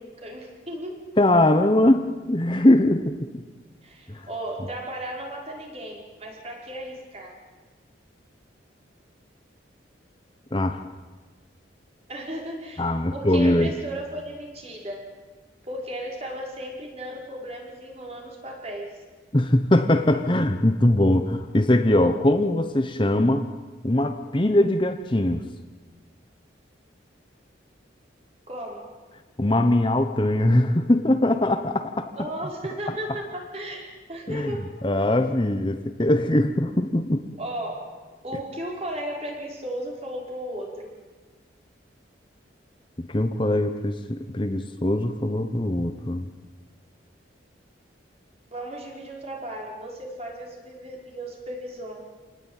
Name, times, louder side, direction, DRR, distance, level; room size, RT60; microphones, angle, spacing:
voice 1, 0.0-1.0 3.8-7.4 12.1-15.1 15.7-19.0 28.5-28.9 32.2-34.8 37.4-37.9 38.2-40.9 48.5-52.0, right 1 dB, 35° right, 0 dB, 5.3 m, -35 dB
voice 2, 1.2-3.4 4.1-4.3 10.5-10.8 12.8-13.7 19.3-23.5 23.8-25.5 29.4-32.3 34.3-34.5 34.8-37.2 43.0-46.3, left 1 dB, 25° left, 7 dB, 1.0 m, -21 dB
27.5 x 19.0 x 9.0 m, 1.3 s
head